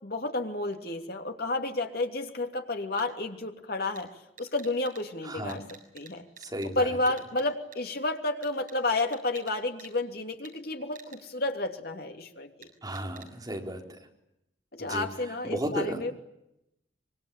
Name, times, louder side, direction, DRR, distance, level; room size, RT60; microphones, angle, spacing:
voice 1, 0.0-4.1 4.4-5.6 5.9-6.3 6.7-12.7 14.7-16.1, left 2 dB, 55° left, 4 dB, 3.0 m, -31 dB
sound 1, 3.0-3.1 4.0-4.1 4.4-5.0 5.5-6.1 6.4-6.7 7.1-7.4 7.7-7.8 8.4-9.5 9.8-9.9 10.4-10.5 11.0-11.2 12.6-12.7 13.0-13.3, right 7 dB, 45° right, 6.7 m, -49 dB
voice 2, 5.2-5.6 6.4-6.9 12.8-13.8 14.8-15.1 15.4-16.0, equal, 20° right, 1 dB, 4.3 m, -34 dB
25.5 x 23.5 x 9.0 m, 0.85 s
head